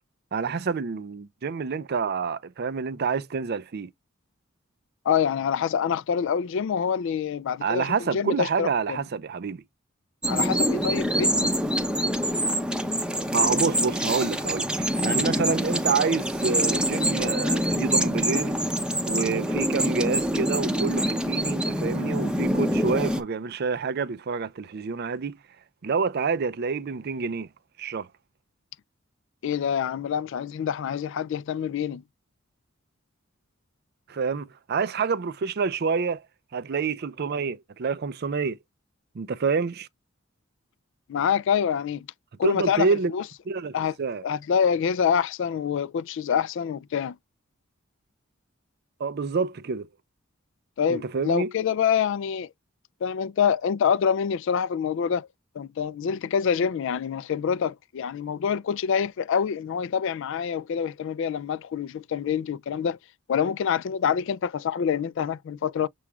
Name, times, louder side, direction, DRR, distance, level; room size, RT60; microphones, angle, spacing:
voice 1, 0.3-3.9 7.6-9.6 13.3-18.6 19.0-25.4 25.8-27.5 27.8-28.1 34.1-36.2 36.5-38.6 39.1-39.9 42.4-43.1 43.5-44.2 49.0-49.9 50.9-51.5, right 5 dB, 50° right, 0.5 m, -28 dB
voice 2, 5.1-9.0 10.3-11.5 29.4-32.0 41.1-42.1 42.4-43.2 43.7-43.9 44.2-47.2 50.8-52.5 53.0-55.3 55.6-63.0 63.3-65.9, left 7 dB, 65° left, 0.3 m, -26 dB
sound 1, 10.2-23.2, equal, 5° right, 0.6 m, -25 dB
7.0 x 3.0 x 2.3 m
head